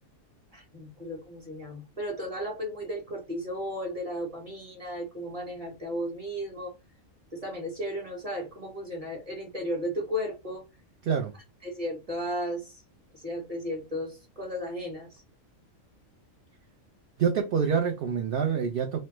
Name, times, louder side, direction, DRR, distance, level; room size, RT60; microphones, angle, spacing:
voice 1, 0.5-6.7 7.3-10.6 11.6-12.8 13.1-15.2, equal, 30° right, 1.0 m, -35 dB
voice 2, 17.2-19.0, right 7 dB, 70° right, 0.5 m, -26 dB
3.2 x 2.1 x 2.9 m
omnidirectional pair, 1.4 m